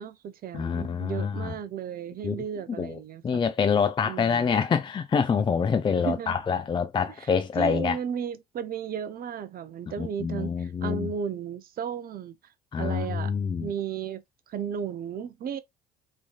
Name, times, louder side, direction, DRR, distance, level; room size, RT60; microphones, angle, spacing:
voice 1, 0.0-3.4 4.0-4.5 6.0-6.3 7.2-7.3 7.6-12.3 12.8-13.3 13.6-15.6, right 8 dB, 45° right, 0.6 m, -34 dB
voice 2, 0.5-1.5 2.2-2.4 2.8-3.0 3.2-8.0 10.0-11.1 12.7-13.7, left 6 dB, 25° left, 0.4 m, -26 dB
3.2 x 2.7 x 2.3 m
hypercardioid pair, 65°, 21 cm